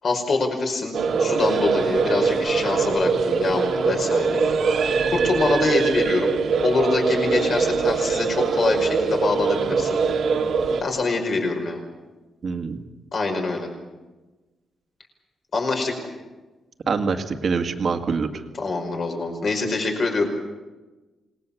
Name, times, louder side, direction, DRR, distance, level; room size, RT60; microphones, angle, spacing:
voice 1, 0.0-4.5 4.8-6.4 6.6-10.0 10.8-11.8 13.1-13.7 15.5-15.9 18.6-20.3, left 3 dB, 40° left, 3 dB, 5.3 m, -24 dB
sound 1, 0.9-10.8, right 5 dB, 55° right, 2.1 m, -22 dB
voice 2, 12.4-12.8 16.9-18.4, right 5 dB, 40° right, 6 dB, 2.0 m, -25 dB
27.5 x 20.5 x 7.2 m, 1.2 s
wide cardioid pair, 170°, 0 cm